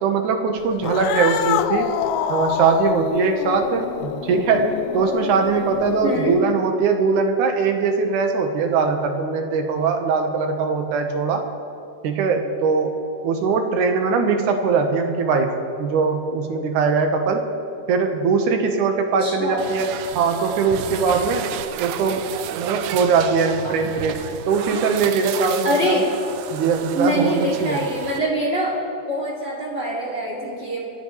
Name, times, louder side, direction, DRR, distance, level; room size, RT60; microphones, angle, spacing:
voice 1, 0.0-1.9 2.3-4.7 4.9-11.5 12.0-12.9 13.2-15.5 15.8-17.4 17.9-19.9 20.2-21.4 21.8-22.2 22.6-26.0 26.5-27.8, right 5 dB, 70° right, 5 dB, 2.5 m, -21 dB
Cat, 0.8-6.4, left 10 dB, 85° left, 1.7 m, -26 dB
voice 2, 6.0-6.4 19.2-19.6 23.5-23.7 25.6-26.1 26.9-28.8 29.1-30.8, right 1 dB, 20° right, -4 dB, 2.4 m, -24 dB
sound 1, 19.6-28.2, right 11 dB, 90° right, 1.6 m, -32 dB
27.5 x 11.0 x 3.2 m, 2.8 s
omnidirectional pair, 3.9 m